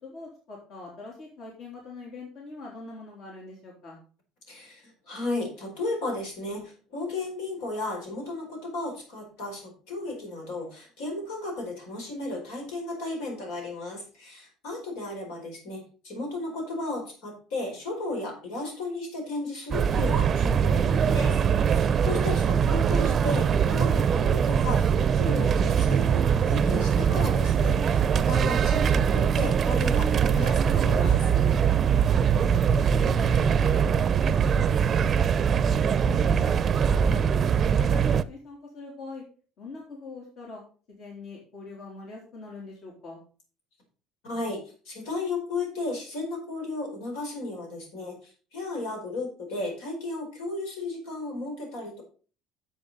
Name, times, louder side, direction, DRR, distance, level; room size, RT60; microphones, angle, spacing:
voice 1, 0.0-4.0 32.3-35.2 35.6-39.2 39.6-40.6 40.9-43.2, left 3 dB, 60° left, -2 dB, 3.4 m, -43 dB
voice 2, 4.5-21.4 21.6-31.3 44.2-52.0, left 2 dB, 85° left, 2 dB, 4.5 m, -34 dB
sound 1, 19.7-38.2, right 7 dB, 40° right, 0.5 m, -22 dB
9.6 x 7.5 x 4.1 m, 0.39 s
supercardioid pair, 105°, 0 cm